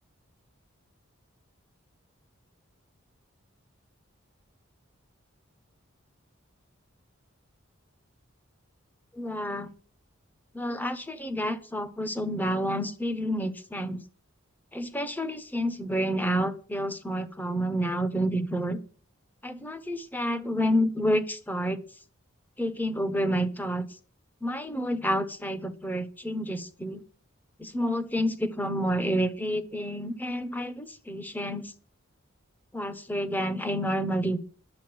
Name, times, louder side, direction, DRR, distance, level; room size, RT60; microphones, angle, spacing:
voice 1, 9.1-9.7 10.5-14.0 14.7-18.8 19.4-21.8 22.6-23.9 24.4-27.0 27.6-31.7 32.7-34.4, equal, 10° left, 11 dB, 1.1 m, -29 dB
11.0 x 8.1 x 7.9 m, 0.40 s
head